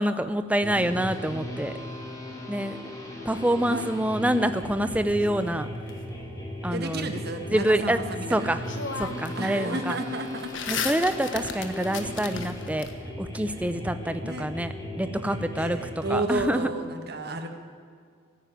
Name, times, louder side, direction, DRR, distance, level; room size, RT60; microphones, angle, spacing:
voice 1, 0.0-1.7 2.5-2.8 3.2-5.7 6.6-7.1 7.5-8.0 8.3-8.6 9.0-10.0 10.7-12.9 13.2-15.8 16.1-16.7, right 1 dB, 5° right, 11 dB, 0.6 m, -26 dB
sound 1, 0.6-16.2, left 1 dB, 15° left, 2.6 m, -37 dB
sound 2, 4.6-5.9 8.1-8.2 8.6-9.4 9.7-12.9, left 5 dB, 65° left, 1.4 m, -35 dB
voice 2, 6.7-8.6 9.3-10.5 14.2-14.5 15.2-17.5, right 2 dB, 50° right, 6 dB, 1.6 m, -32 dB
16.0 x 9.7 x 9.1 m, 2.1 s
head